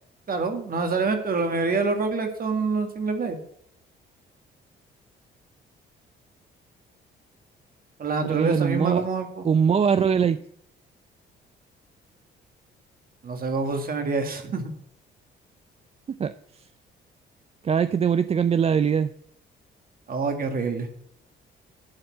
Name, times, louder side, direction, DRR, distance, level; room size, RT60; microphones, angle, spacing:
voice 1, 0.3-3.4 8.0-9.5 13.2-14.7 20.1-20.9, right 4 dB, 45° right, 5 dB, 2.0 m, -26 dB
voice 2, 8.2-9.1 9.4-10.4 16.2-16.3 17.6-19.1, right 7 dB, 30° right, 13 dB, 0.4 m, -22 dB
11.5 x 4.4 x 7.4 m, 0.71 s
cardioid pair, 90°, 20 cm